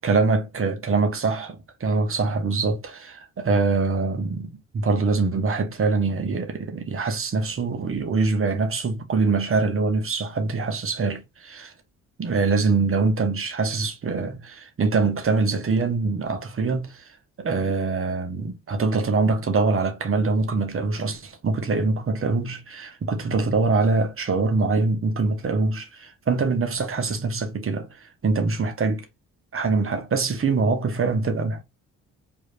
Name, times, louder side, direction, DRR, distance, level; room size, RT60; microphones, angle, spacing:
voice 1, 0.0-11.7 12.2-17.1 17.4-29.0 29.5-31.6, right 4 dB, 30° right, 1.1 m, -24 dB
4.7 x 2.8 x 2.5 m
hypercardioid pair, 45°, 42 cm